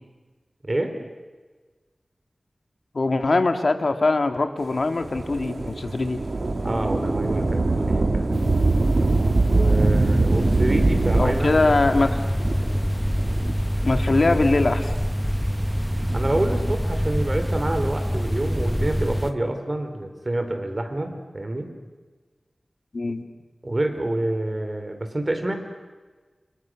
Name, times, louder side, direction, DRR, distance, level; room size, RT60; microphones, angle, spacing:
voice 1, 2.9-6.2 11.2-12.2 13.8-14.9 22.9-23.2, left 3 dB, 65° left, 6 dB, 2.1 m, -22 dB
Thunder / Rain, 5.0-14.0 14.7-14.8 15.8-17.0 18.6-19.3, right 3 dB, 65° right, 2.4 m, -24 dB
voice 2, 6.6-8.4 9.5-12.0 16.1-21.7 23.6-25.6, right 1 dB, 35° right, 6 dB, 3.9 m, -27 dB
sound 1, 8.3-19.3, equal, 5° left, 0.8 m, -26 dB
29.0 x 28.0 x 6.4 m, 1.3 s
wide cardioid pair, 70°, 0 cm